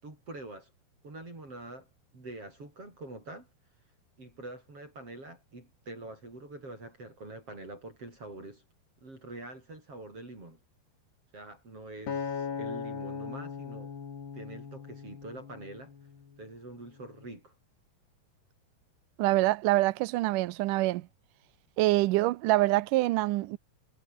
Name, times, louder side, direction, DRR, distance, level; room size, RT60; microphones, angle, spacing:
voice 1, 0.0-0.7 1.0-3.5 4.2-8.6 9.0-10.6 11.3-13.9 14.3-15.9 16.4-17.5, right 2 dB, 35° right, 8.6 m, -45 dB
Acoustic guitar, 12.1-16.4 17.0-17.3, left 6 dB, 90° left, 6.7 m, -39 dB
voice 2, 19.2-21.1 21.8-23.6, right 18 dB, 80° right, 1.9 m, -25 dB
omnidirectional pair, 4.6 m